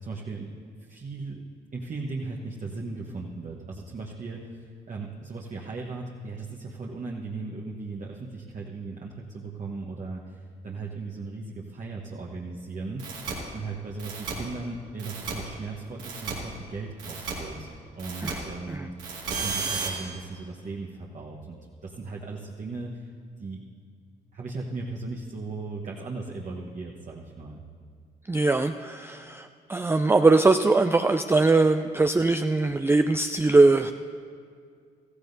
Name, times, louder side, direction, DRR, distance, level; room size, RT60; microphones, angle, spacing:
voice 1, 0.0-0.5 0.8-1.4 1.7-13.2 13.5-21.6 21.8-23.1 23.4-23.6 24.3-27.6, right 3 dB, 40° right, -2 dB, 1.2 m, -37 dB
sound 1, 13.0-13.3 14.0-14.3 15.0-15.3 16.0-16.3 17.0-17.3 18.0-18.3 19.0-19.9, right 5 dB, 85° right, 2.0 m, -32 dB
voice 2, 28.3-33.9, right 3 dB, 10° right, 8 dB, 0.4 m, -21 dB
15.0 x 15.0 x 2.7 m, 2.2 s
hypercardioid pair, 50°, 20 cm